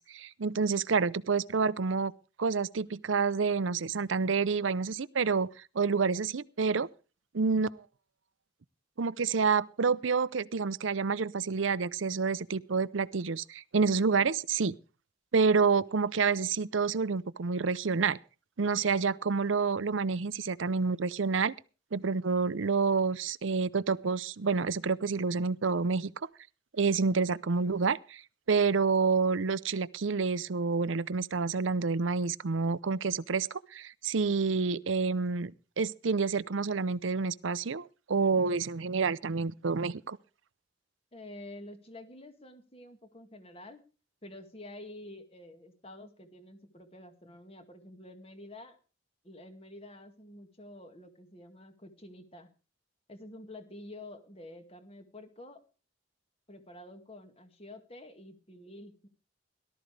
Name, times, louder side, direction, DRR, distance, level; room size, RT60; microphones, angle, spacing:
voice 1, 0.0-2.1 2.4-5.5 5.7-6.9 7.3-7.9 9.0-14.7 15.3-18.2 18.6-21.5 21.9-26.1 26.8-28.2 28.5-35.5 35.8-40.2, right 5 dB, 80° right, 0.6 m, -28 dB
voice 2, 41.1-43.8 44.2-48.8 49.2-52.5 53.1-55.6 56.5-59.1, left 1 dB, 30° left, 2.0 m, -49 dB
18.0 x 13.0 x 3.3 m
head